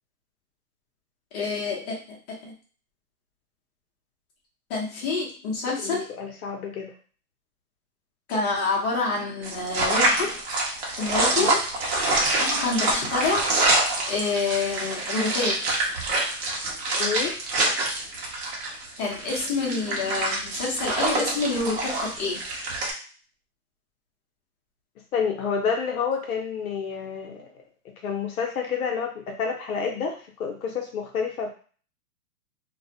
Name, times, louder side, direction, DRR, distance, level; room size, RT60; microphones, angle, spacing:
voice 1, 1.3-2.0 2.3-2.5 4.7-6.0 8.3-10.4 11.0-12.0 12.4-13.5 14.1-15.6 19.0-22.4, left 3 dB, 25° left, -4 dB, 0.7 m, -27 dB
voice 2, 5.8-6.9 11.4-11.6 17.0-17.4 25.1-27.5 27.8-31.5, left 6 dB, 65° left, 2 dB, 0.8 m, -29 dB
sound 1, 9.4-22.9, right 2 dB, 45° right, 0.8 m, -26 dB
2.4 x 2.0 x 2.7 m, 0.40 s
hypercardioid pair, 140°, 47 cm